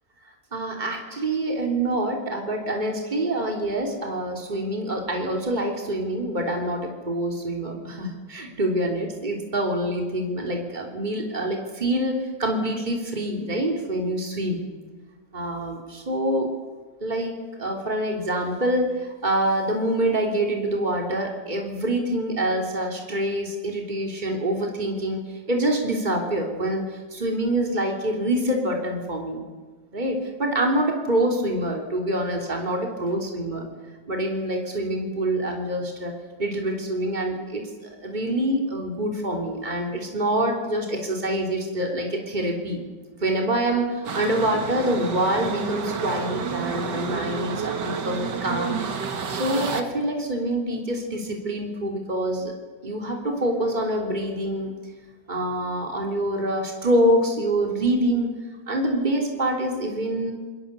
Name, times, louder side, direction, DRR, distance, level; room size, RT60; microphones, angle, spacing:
voice 1, 0.5-14.6 15.3-16.5 17.0-25.2 25.5-29.4 29.9-33.7 34.1-36.1 36.4-42.8 43.2-48.8 49.3-52.5 52.8-54.7 55.3-58.3 58.7-60.3, right 1 dB, 25° right, 1 dB, 3.5 m, -26 dB
sound 1, 44.0-49.8, right 6 dB, 65° right, 2.3 m, -30 dB
28.5 x 21.5 x 6.9 m, 1.4 s
omnidirectional pair, 2.0 m